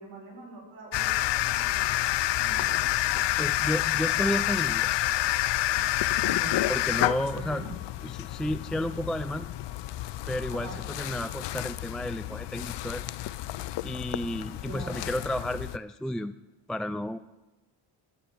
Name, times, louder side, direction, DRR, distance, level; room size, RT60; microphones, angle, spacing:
voice 1, 0.0-2.0 2.3-2.8 6.2-6.6 7.3-7.7 10.5-10.8 14.6-15.1, right 2 dB, 85° right, 0 dB, 4.9 m, -43 dB
sound 1, 0.9-15.8, left 15 dB, 65° left, 0.6 m, -29 dB
voice 2, 3.4-5.0 6.7-7.6 8.0-9.5 10.3-13.1 13.8-16.4 16.7-17.2, equal, ahead, 11 dB, 0.3 m, -32 dB
11.5 x 9.6 x 7.1 m, 1.1 s
cardioid pair, 85°, 45 cm